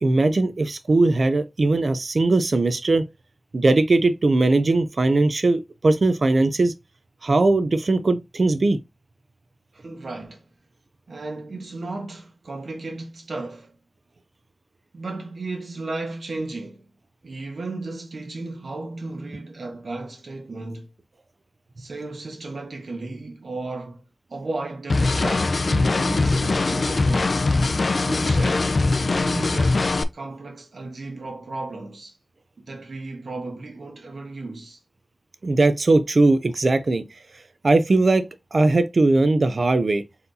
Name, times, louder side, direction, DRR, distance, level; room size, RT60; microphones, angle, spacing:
voice 1, 0.0-3.0 3.5-6.7 7.2-8.8 35.4-37.0 37.6-38.3 38.5-40.0, right 2 dB, 60° right, 0.5 m, -19 dB
voice 2, 9.7-10.4 11.1-13.7 14.9-16.9 17.2-20.9 21.8-27.4 28.0-28.7 29.2-29.9 30.1-32.1 32.7-34.8, right 2 dB, 80° right, 1.4 m, -34 dB
sound 1, 24.9-30.0, left 3 dB, 65° left, 0.4 m, -21 dB
4.2 x 3.9 x 2.7 m
wide cardioid pair, 85°, 0 cm